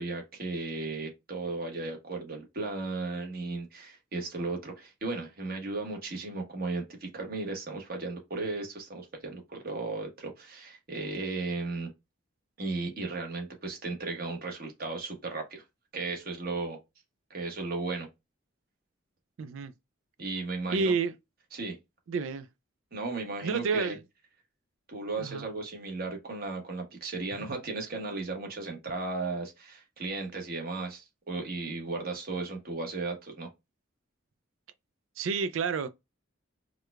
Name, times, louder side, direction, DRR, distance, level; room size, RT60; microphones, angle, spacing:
voice 1, 0.0-11.9 12.6-15.6 15.9-16.8 17.3-18.1 20.2-20.9 21.5-21.8 22.9-23.9 24.9-33.5, right 3 dB, 50° right, 1.1 m, -35 dB
voice 2, 19.4-19.7 20.7-21.1 22.1-22.5 23.4-24.0 25.2-25.5 35.2-35.9, right 4 dB, 80° right, 0.4 m, -29 dB
4.7 x 2.3 x 2.2 m
head